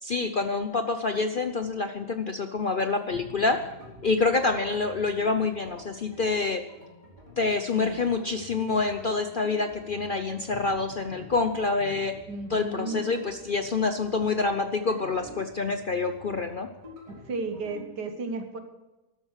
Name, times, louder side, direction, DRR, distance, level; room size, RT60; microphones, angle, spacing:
voice 1, 0.0-3.6 4.0-6.6 7.4-12.1 12.5-16.7, left 4 dB, 50° left, 7 dB, 0.6 m, -27 dB
sound 1, 3.1-17.9, equal, 20° right, 3.9 m, -48 dB
voice 2, 12.3-13.1 17.3-18.6, right 3 dB, 85° right, 6 dB, 2.1 m, -33 dB
13.0 x 12.5 x 6.5 m, 1.1 s
omnidirectional pair, 1.7 m